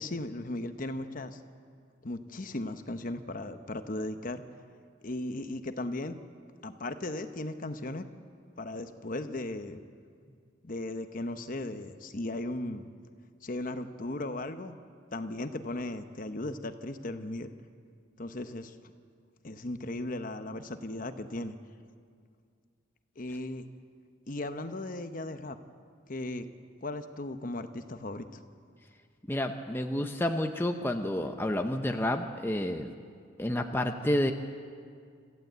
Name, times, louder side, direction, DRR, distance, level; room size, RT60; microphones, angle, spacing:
voice 1, 0.0-1.4 2.0-4.4 5.0-6.2 6.6-8.1 8.6-9.8 10.6-12.9 13.4-14.8 15.1-17.5 18.2-18.8 19.4-21.5 23.2-23.7 24.3-25.6 26.1-26.5 26.8-28.4, left 2 dB, 40° left, 9 dB, 0.9 m, -36 dB
voice 2, 29.3-32.9 33.4-34.3, left 1 dB, 10° left, 4 dB, 0.7 m, -30 dB
26.0 x 15.0 x 8.1 m, 2.2 s
head